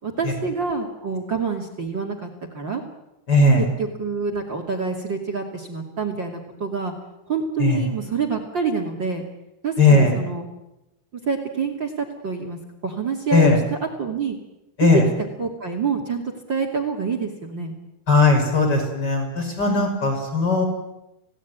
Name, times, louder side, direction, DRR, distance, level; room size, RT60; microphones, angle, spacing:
voice 1, 0.0-2.8 3.6-6.9 7.3-9.2 9.6-10.5 11.2-14.4 14.8-15.0 15.4-17.7, right 5 dB, 30° right, 5 dB, 2.7 m, -27 dB
voice 2, 3.3-3.6 7.6-7.8 9.8-10.1 13.3-13.6 14.8-15.0 18.1-20.6, left 3 dB, 25° left, 3 dB, 6.1 m, -17 dB
27.0 x 17.5 x 9.5 m, 0.93 s
omnidirectional pair, 4.8 m